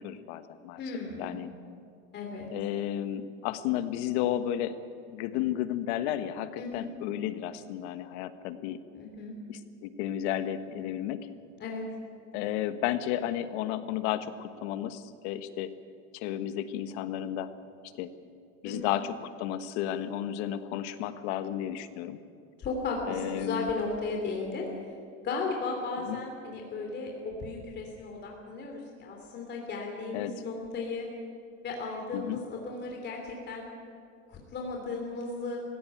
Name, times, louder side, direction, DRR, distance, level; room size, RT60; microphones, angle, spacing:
voice 1, 0.0-0.8 1.2-1.5 2.5-4.7 5.1-8.8 9.5-11.3 12.3-15.7 16.1-17.5 18.0-18.1 18.6-22.2 23.1-23.7 26.0-26.2 30.1-30.4 32.1-32.4, left 11 dB, 65° left, 11 dB, 1.4 m, -33 dB
voice 2, 0.8-1.4 2.1-2.5 6.6-6.9 8.9-9.3 11.6-11.8 18.6-18.9 22.6-24.7 25.2-31.1 31.6-33.7 34.3-35.6, left 3 dB, 30° left, 1 dB, 3.1 m, -35 dB
19.0 x 16.5 x 9.2 m, 2.4 s
supercardioid pair, 140°, 36 cm